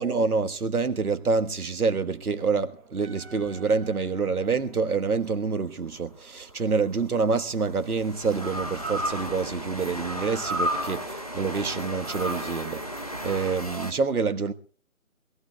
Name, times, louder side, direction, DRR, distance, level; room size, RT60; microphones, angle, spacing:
voice 1, 0.0-14.5, right 4 dB, 90° right, 1.4 m, -27 dB
sound 1, 3.0-4.5 6.4-13.9, equal, 25° left, 0.7 m, -34 dB
25.0 x 16.0 x 2.3 m
figure-of-eight pair, 175°, 43 cm